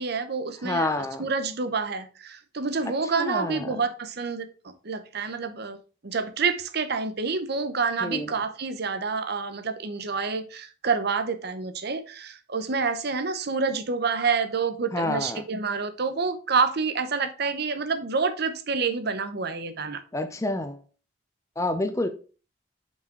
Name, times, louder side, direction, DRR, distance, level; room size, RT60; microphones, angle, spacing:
voice 1, 0.0-5.8 6.0-20.0, right 4 dB, 55° right, 0.8 m, -28 dB
voice 2, 0.6-1.3 3.2-3.8 8.0-8.3 14.9-15.4 20.1-20.8 21.6-22.1, left 2 dB, 15° left, 0.6 m, -28 dB
5.6 x 4.8 x 4.5 m
head